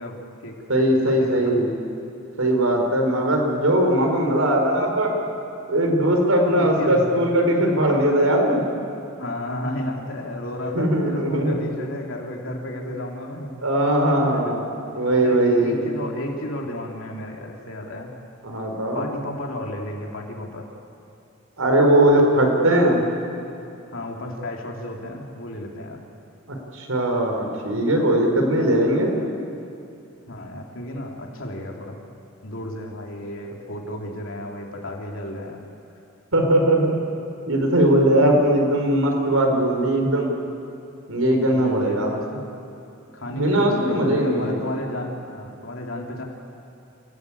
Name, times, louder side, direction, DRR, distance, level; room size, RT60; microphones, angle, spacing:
voice 1, 0.0-0.6 1.0-1.6 6.5-7.3 9.2-13.5 14.3-14.6 15.2-18.2 18.9-20.7 23.9-26.0 30.3-32.0 32.4-35.6 41.5-42.5 43.1-46.2, left 1 dB, 70° left, 0 dB, 3.4 m, -33 dB
voice 2, 0.7-1.7 2.4-5.1 5.7-8.6 10.7-11.5 13.6-14.6 14.9-15.8 18.4-19.0 21.6-23.0 26.5-29.2 36.3-36.9 37.5-40.3 41.1-42.1 43.3-44.6, right 1 dB, 90° right, 2 dB, 4.8 m, -19 dB
28.0 x 17.5 x 8.7 m, 2.7 s
head